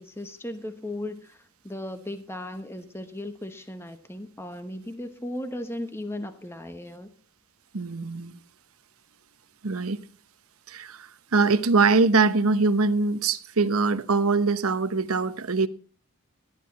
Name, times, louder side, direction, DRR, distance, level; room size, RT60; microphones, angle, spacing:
voice 1, 0.0-7.1, left 1 dB, 10° left, 1.0 m, -36 dB
voice 2, 7.7-8.4 9.6-10.0 10.7-15.7, right 4 dB, 70° right, 1.0 m, -23 dB
14.5 x 11.5 x 4.1 m
head